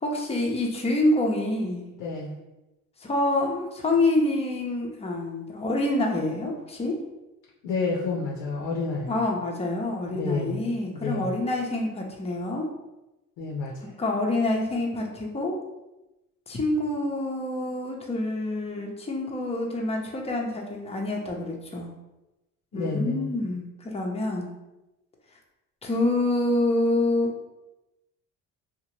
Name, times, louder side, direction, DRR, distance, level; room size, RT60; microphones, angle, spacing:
voice 1, 0.0-1.8 3.0-6.9 9.1-12.7 14.0-15.6 16.5-21.9 22.7-24.5 25.8-27.3, left 2 dB, 15° left, 0 dB, 0.6 m, -27 dB
voice 2, 2.0-2.4 7.6-9.2 10.1-11.4 13.4-13.9 22.7-23.3, left 3 dB, 80° left, -3 dB, 0.6 m, -30 dB
2.7 x 2.1 x 3.0 m, 0.97 s
supercardioid pair, 75°, 37 cm